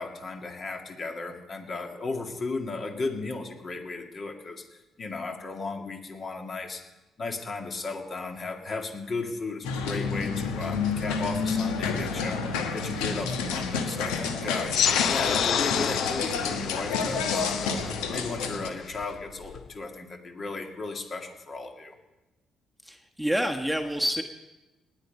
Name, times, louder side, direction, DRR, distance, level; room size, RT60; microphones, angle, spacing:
voice 1, 0.0-4.7 5.0-6.8 7.2-14.7 15.1-22.0, left 3 dB, 45° left, 4 dB, 2.3 m, -35 dB
sound 1, 9.6-18.7, left 5 dB, 80° left, 1.3 m, -30 dB
sound 2, 14.7-19.7, left 8 dB, 65° left, 0.8 m, -29 dB
voice 2, 22.8-24.2, equal, ahead, 4 dB, 1.3 m, -28 dB
19.5 x 9.0 x 5.4 m, 1.1 s
hypercardioid pair, 50°, 0 cm